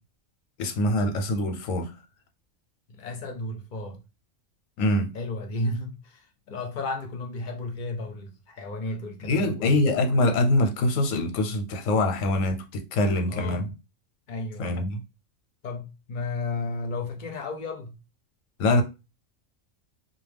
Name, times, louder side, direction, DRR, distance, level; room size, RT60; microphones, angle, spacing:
voice 1, 0.6-1.9 4.8-5.1 9.2-13.7 14.6-15.0 18.6-18.8, left 1 dB, 90° left, 1.0 m, -24 dB
voice 2, 2.9-4.0 5.1-9.7 13.3-13.7 14.3-14.8 15.6-18.0, left 2 dB, 60° left, 0.5 m, -33 dB
2.3 x 2.1 x 3.3 m
omnidirectional pair, 1.3 m